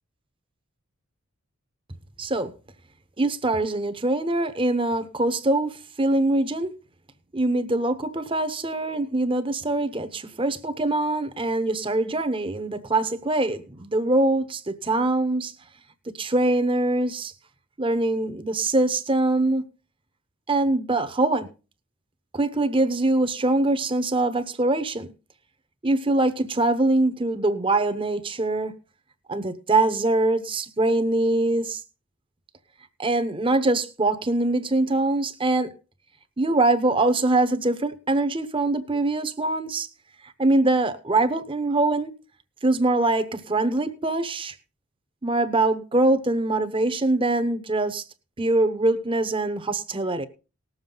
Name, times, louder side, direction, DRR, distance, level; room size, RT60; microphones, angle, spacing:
voice 1, 2.2-2.5 3.2-6.7 7.3-15.5 16.1-17.3 17.8-19.6 20.5-21.5 22.3-25.1 25.8-28.7 29.3-31.8 33.0-35.7 36.4-39.9 40.2-42.1 42.6-44.5 45.2-48.0 48.4-50.3, right 2 dB, 25° right, 0.9 m, -23 dB
19.0 x 7.3 x 3.9 m
head